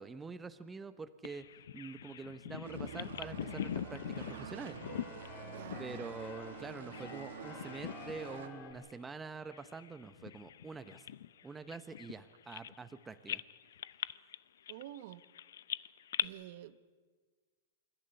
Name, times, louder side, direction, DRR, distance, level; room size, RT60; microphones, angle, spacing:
voice 1, 0.0-1.5 1.7-4.8 5.8-11.1 11.4-13.4, right 4 dB, 10° right, 11 dB, 0.8 m, -46 dB
Bird vocalization bird call bird song, 1.2-7.2 7.5-8.4 8.7-8.9 9.5-12.9 13.3-16.2, left 10 dB, 80° left, 0.6 m, -43 dB
sound 1, 2.6-8.5, right 7 dB, 70° right, 1.9 m, -48 dB
Keyboard (musical), 2.8-8.7, left 5 dB, 30° left, 3.4 m, -52 dB
voice 2, 5.4-5.8 14.7-15.2 16.2-16.9, right 13 dB, 55° right, 14 dB, 1.0 m, -49 dB
27.0 x 12.0 x 9.7 m, 1.5 s
hypercardioid pair, 150°, 0 cm